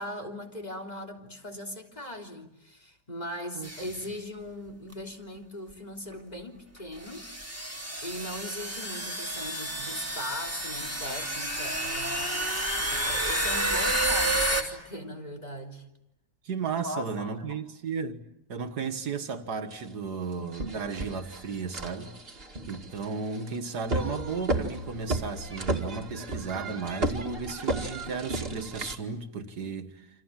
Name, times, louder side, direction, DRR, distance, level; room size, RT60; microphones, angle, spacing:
voice 1, 0.0-7.3 8.0-15.8 16.8-17.5, left 1 dB, 25° left, 3.5 m, -39 dB
sound 1, 3.6-4.0 4.9-5.0 6.1-6.2 7.0-14.6, right 1 dB, 10° right, 3.2 m, -30 dB
voice 2, 16.5-22.1 22.7-30.0, right 5 dB, 75° right, 2.1 m, -34 dB
sound 2, 19.7-19.8 20.3-29.0, right 2 dB, 35° right, 2.4 m, -33 dB
28.5 x 27.0 x 7.5 m
omnidirectional pair, 1.7 m